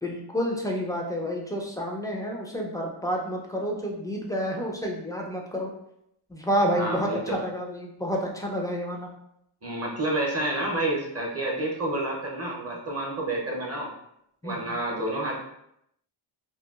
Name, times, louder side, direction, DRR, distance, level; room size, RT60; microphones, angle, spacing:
voice 1, 0.0-5.7 6.3-9.1 14.4-14.8, equal, 10° left, -1 dB, 0.3 m, -29 dB
voice 2, 6.8-7.4 9.6-13.9 14.4-15.4, right 1 dB, 30° right, -2 dB, 0.6 m, -29 dB
2.9 x 2.2 x 2.3 m, 0.77 s
wide cardioid pair, 100°, 49 cm